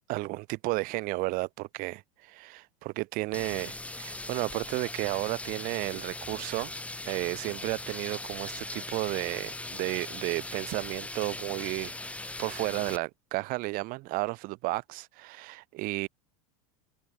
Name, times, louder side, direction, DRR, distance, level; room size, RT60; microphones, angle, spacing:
voice 1, 0.1-6.7 7.0-11.9 12.4-16.1, right 22 dB, 55° right, 1.4 m, -33 dB
sound 1, 3.3-13.0, left 2 dB, 5° left, 2.4 m, -39 dB
hypercardioid pair, 100°, 18 cm